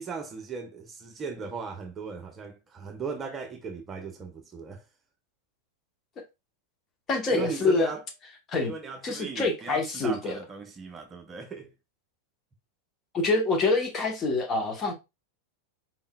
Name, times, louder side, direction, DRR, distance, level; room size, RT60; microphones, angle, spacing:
voice 1, 0.0-4.8 7.3-8.0 8.6-11.7, right 5 dB, 20° right, 0.7 m, -37 dB
voice 2, 7.1-7.9 8.5-8.7 9.0-10.4 13.1-14.9, left 3 dB, 25° left, 1.1 m, -26 dB
4.2 x 3.7 x 2.2 m
figure-of-eight pair, 90°, 0 cm